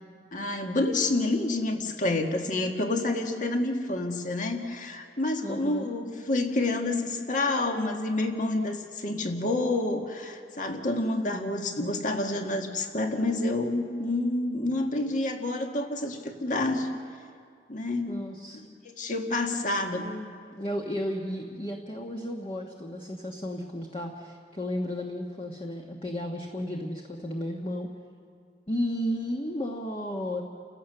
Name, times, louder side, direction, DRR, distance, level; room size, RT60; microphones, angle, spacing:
voice 1, 0.3-16.9 17.7-18.1 18.8-20.1, left 2 dB, 45° left, 4 dB, 1.8 m, -28 dB
voice 2, 5.4-5.9 18.1-18.6 19.9-27.9 28.7-30.4, equal, 30° left, 1 dB, 1.3 m, -33 dB
30.0 x 16.0 x 6.8 m, 2.2 s
head